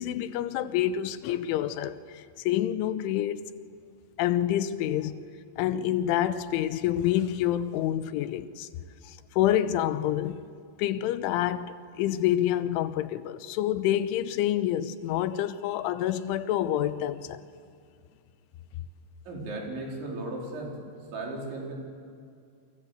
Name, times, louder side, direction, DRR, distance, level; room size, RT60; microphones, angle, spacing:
voice 1, 0.0-3.4 4.2-5.2 5.6-8.7 9.0-10.4 10.8-17.4, left 12 dB, 90° left, 3.4 m, -27 dB
voice 2, 19.3-20.8 21.1-21.7, right 2 dB, 75° right, 6.7 m, -35 dB
29.0 x 25.5 x 8.1 m
omnidirectional pair, 5.4 m